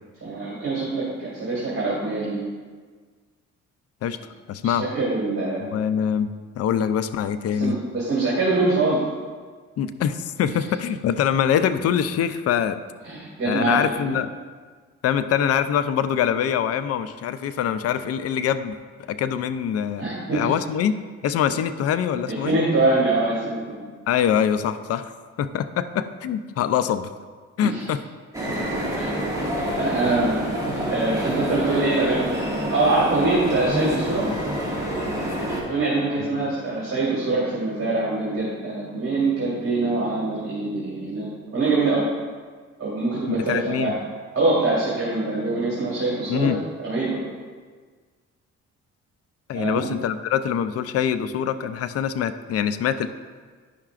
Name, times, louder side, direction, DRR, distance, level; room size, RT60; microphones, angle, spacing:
voice 1, 0.2-2.4 4.6-5.7 7.5-9.0 13.0-14.2 20.0-20.5 22.3-23.9 27.6-27.8 29.0-29.1 29.7-30.5 30.9-34.2 35.7-42.0 42.8-44.0 44.3-46.5 46.8-47.2 49.5-49.8, right 2 dB, 45° right, -6 dB, 2.1 m, -24 dB
voice 2, 4.5-4.9 5.6-7.8 9.8-12.8 13.5-14.3 15.0-18.7 19.0-20.0 20.3-20.9 21.2-22.6 24.1-25.1 25.4-27.1 27.6-28.0 43.3-43.9 46.3-46.6 49.5-53.1, left 9 dB, 55° left, 11 dB, 0.4 m, -24 dB
sound 1, 28.3-35.6, equal, 10° right, 1.8 m, -27 dB
10.0 x 5.7 x 2.4 m, 1.5 s
cardioid pair, 90°, 30 cm